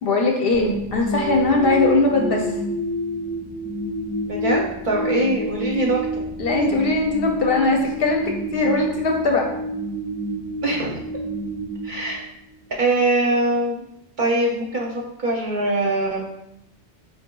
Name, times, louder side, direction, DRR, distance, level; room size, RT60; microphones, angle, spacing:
voice 1, 0.0-2.5 6.4-9.5, left 2 dB, 65° left, 1 dB, 0.7 m, -20 dB
sound 1, 0.5-12.7, equal, 5° left, 0.9 m, -28 dB
voice 2, 4.3-6.2 10.6-11.1 11.8-12.2 12.8-13.9 14.2-16.3, right 2 dB, 55° right, -2 dB, 0.6 m, -22 dB
4.8 x 2.8 x 2.2 m, 0.83 s
omnidirectional pair, 1.2 m